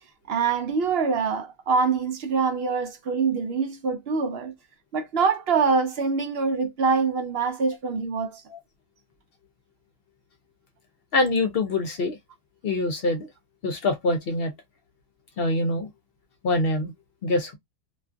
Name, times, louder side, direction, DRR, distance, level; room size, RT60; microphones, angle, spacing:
voice 1, 0.3-4.5 4.9-8.4, right 5 dB, 65° right, 0.7 m, -24 dB
voice 2, 11.1-12.2 12.6-13.3 13.6-14.5 15.4-15.9 16.4-16.9 17.2-17.5, left 2 dB, 60° left, 0.7 m, -24 dB
2.4 x 2.3 x 2.4 m
omnidirectional pair, 1.3 m